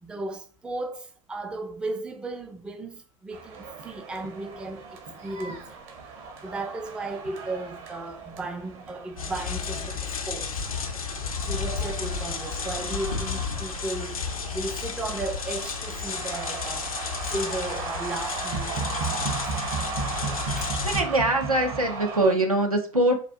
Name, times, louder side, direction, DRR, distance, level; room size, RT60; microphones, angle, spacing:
voice 1, 0.0-5.8 6.4-10.5 11.4-14.2 14.5-19.3 20.5-20.8, right 2 dB, 5° right, 0.3 m, -35 dB
sound 1, 3.3-22.3, right 4 dB, 45° right, 0.8 m, -36 dB
sound 2, 9.2-21.0, left 5 dB, 80° left, 0.5 m, -32 dB
voice 2, 20.8-23.2, right 1 dB, 90° right, 0.6 m, -23 dB
4.0 x 2.2 x 2.6 m
figure-of-eight pair, 85°, 18 cm